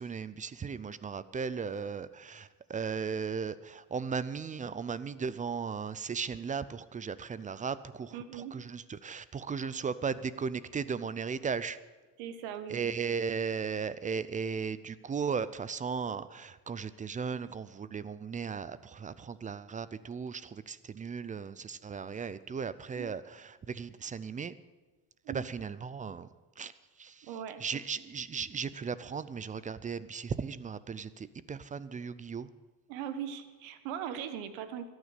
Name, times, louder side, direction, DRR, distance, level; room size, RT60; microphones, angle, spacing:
voice 1, 0.0-11.8 12.7-24.5 25.3-26.3 26.6-26.7 27.0-27.3 27.6-32.5, right 6 dB, 15° right, 16 dB, 0.4 m, -36 dB
voice 2, 8.1-8.5 12.2-12.9 23.0-23.1 25.2-25.4 27.2-27.8 32.9-34.9, right 9 dB, 75° right, 10 dB, 1.5 m, -40 dB
13.5 x 9.6 x 8.2 m, 1.2 s
supercardioid pair, 105°, 48 cm